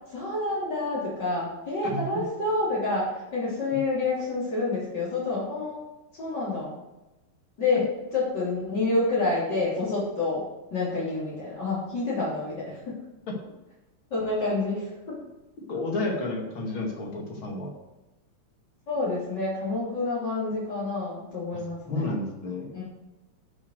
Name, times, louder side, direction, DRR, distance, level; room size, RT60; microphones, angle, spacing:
voice 1, 0.1-5.8 6.2-6.7 7.6-7.9 8.1-10.4 10.7-13.0 14.1-15.1 18.9-22.1 22.7-22.8, left 3 dB, 50° left, -8 dB, 4.1 m, -28 dB
voice 2, 15.7-17.7 21.9-22.8, left 2 dB, 70° left, 0 dB, 3.0 m, -31 dB
11.5 x 6.5 x 6.6 m, 1.0 s
omnidirectional pair, 2.3 m